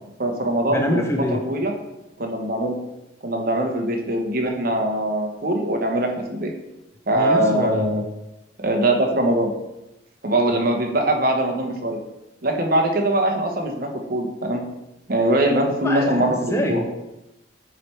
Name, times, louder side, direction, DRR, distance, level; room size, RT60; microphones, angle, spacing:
voice 1, 0.2-1.7 2.2-2.8 3.2-6.5 7.1-8.0 8.6-9.5 10.2-12.0 12.4-14.6 15.1-16.8, right 1 dB, 50° right, 2 dB, 1.0 m, -22 dB
voice 2, 0.7-1.4 7.1-8.0 15.8-16.9, left 1 dB, 15° left, 3 dB, 0.5 m, -25 dB
8.8 x 3.3 x 4.4 m, 0.94 s
head